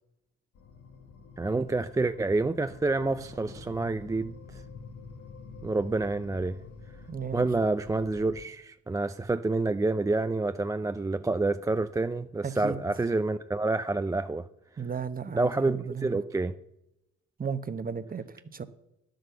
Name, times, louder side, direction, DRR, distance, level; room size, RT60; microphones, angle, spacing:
sound 1, 0.5-8.4, left 4 dB, 85° left, 1.7 m, -47 dB
voice 1, 1.4-4.3 5.6-6.6 7.3-14.5 15.3-16.6, right 3 dB, 10° right, 0.3 m, -28 dB
voice 2, 7.1-7.5 12.6-12.8 14.8-16.2 17.4-18.6, right 6 dB, 30° right, 0.9 m, -34 dB
10.5 x 7.8 x 6.9 m
cardioid pair, 90°, 30 cm